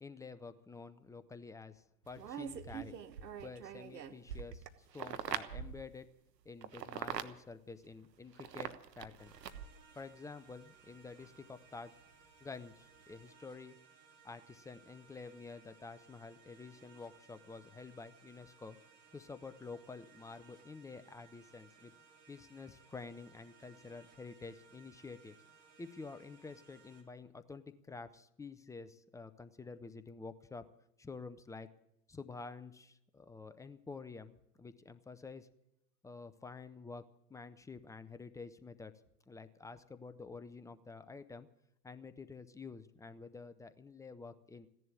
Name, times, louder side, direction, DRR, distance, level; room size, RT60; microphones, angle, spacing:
voice 1, 0.0-3.0 3.4-4.7 4.9-6.1 6.4-9.3 10.0-12.0 12.4-13.8 14.2-18.8 19.1-21.9 22.3-25.4 25.8-30.7 31.0-31.7 32.1-35.5 36.0-39.0 39.3-41.5 41.8-44.7, left 4 dB, 5° left, 11 dB, 0.5 m, -49 dB
sound 1, 2.0-5.9 6.6-7.3 8.3-9.8 11.2-11.3, right 8 dB, 80° right, 1.3 m, -43 dB
sound 2, 9.2-27.0, right 5 dB, 40° right, 3.9 m, -63 dB
15.5 x 11.0 x 8.4 m, 0.81 s
hypercardioid pair, 95°, 49 cm